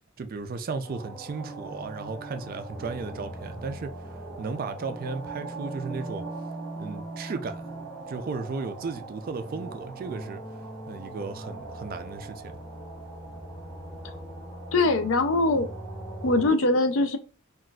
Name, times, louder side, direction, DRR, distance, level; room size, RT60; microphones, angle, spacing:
voice 1, 0.2-3.9 4.4-6.3 6.8-7.7 8.1-10.4 10.9-12.5, right 4 dB, 45° right, 0.3 m, -35 dB
sound 1, 0.8-16.5, right 2 dB, 5° left, 1.7 m, -40 dB
voice 2, 14.7-15.7 16.2-17.2, left 2 dB, 65° left, 0.4 m, -22 dB
3.8 x 2.4 x 2.3 m
head